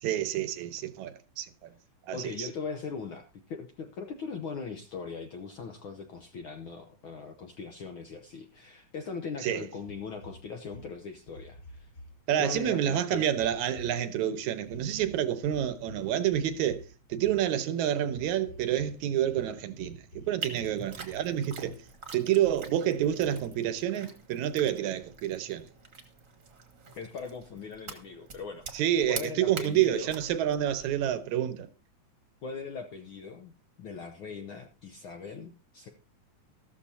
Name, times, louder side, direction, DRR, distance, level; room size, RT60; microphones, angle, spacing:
voice 1, 0.0-1.7 2.1-2.5 9.4-9.6 12.3-16.8 17.1-21.8 22.1-25.7 28.7-31.7, right 11 dB, 85° right, 2.2 m, -28 dB
voice 2, 2.1-11.9 12.4-13.3 27.0-30.2 32.4-33.5 33.8-35.9, left 5 dB, 70° left, 1.2 m, -40 dB
sound 1, 9.9-12.1 12.4-12.7 13.3-14.2 14.6-17.5 18.1-19.0 19.2-20.3 20.5-21.2 21.6-22.1 22.5-22.6 23.2-23.8, left 1 dB, 55° left, 0.6 m, -48 dB
sound 2, 20.4-31.2, right 5 dB, 35° right, 1.4 m, -45 dB
14.0 x 13.0 x 2.7 m
omnidirectional pair, 3.3 m